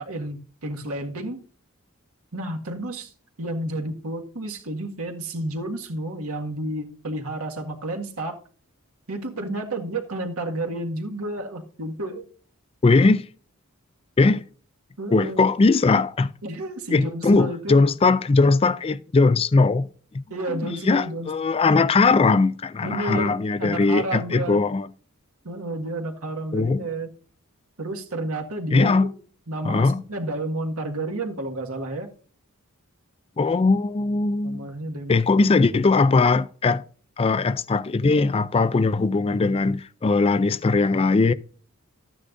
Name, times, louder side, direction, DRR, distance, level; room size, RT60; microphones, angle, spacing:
voice 1, 0.0-1.4 2.3-3.1 3.4-8.4 9.1-12.3 15.0-15.5 16.4-17.8 20.3-21.3 22.8-24.6 25.4-27.1 27.8-29.2 29.5-32.1 34.4-35.2, right 2 dB, 85° right, 1.8 m, -31 dB
voice 2, 12.8-13.2 14.2-14.5 15.1-16.3 16.9-19.9 20.5-24.9 26.5-26.8 28.7-29.1 29.6-30.0 33.4-34.6 35.1-36.8 37.2-41.3, left 3 dB, 25° left, 0.3 m, -20 dB
13.0 x 9.8 x 2.6 m
head